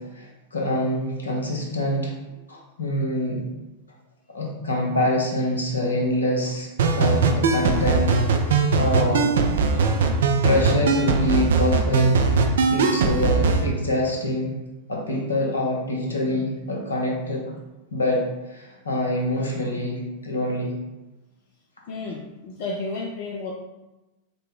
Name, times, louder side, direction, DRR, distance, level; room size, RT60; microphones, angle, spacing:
voice 1, 0.0-2.2 2.5-3.4 4.3-8.1 8.8-9.3 9.7-9.8 10.4-12.2 12.7-14.6 14.9-17.5 17.9-18.2 18.5-20.7, left 1 dB, 75° left, -2 dB, 0.8 m, -25 dB
sound 1, 6.8-13.6, right 4 dB, 60° right, 0.4 m, -20 dB
voice 2, 21.9-23.5, left 3 dB, 50° left, 0 dB, 0.4 m, -32 dB
3.9 x 2.1 x 3.6 m, 1.0 s
figure-of-eight pair, 90°, 0 cm